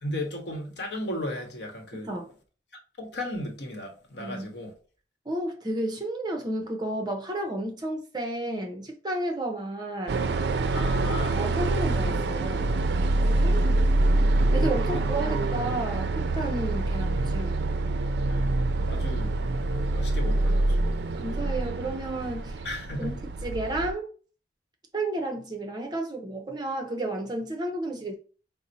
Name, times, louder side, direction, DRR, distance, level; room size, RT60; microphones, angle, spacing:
voice 1, 0.0-2.1 3.0-4.7 10.7-11.4 14.9-15.0 18.3-18.6 18.8-19.4 19.9-20.8 22.6-23.2, left 1 dB, 70° left, 0.9 m, -35 dB
voice 2, 4.2-4.5 5.3-10.2 11.3-12.7 13.2-13.9 14.5-17.6 21.2-22.6 23.0-24.1 24.9-28.1, right 1 dB, 25° right, 0.6 m, -32 dB
sound 1, 10.1-23.9, right 2 dB, 65° right, 0.4 m, -25 dB
4.2 x 2.0 x 3.9 m
head